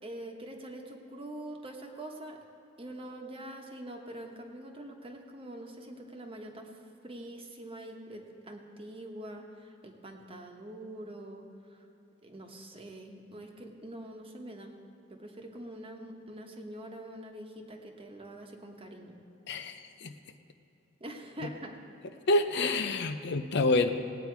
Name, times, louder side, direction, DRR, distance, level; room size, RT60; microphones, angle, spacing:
voice 1, 0.0-2.4 2.8-6.7 7.0-11.4 12.2-14.7 15.1-19.2 21.0-21.8, right 1 dB, 30° right, 2 dB, 1.2 m, -44 dB
voice 2, 19.5-20.1 22.3-23.9, left 2 dB, 60° left, 8 dB, 0.6 m, -27 dB
18.5 x 9.0 x 4.6 m, 2.9 s
head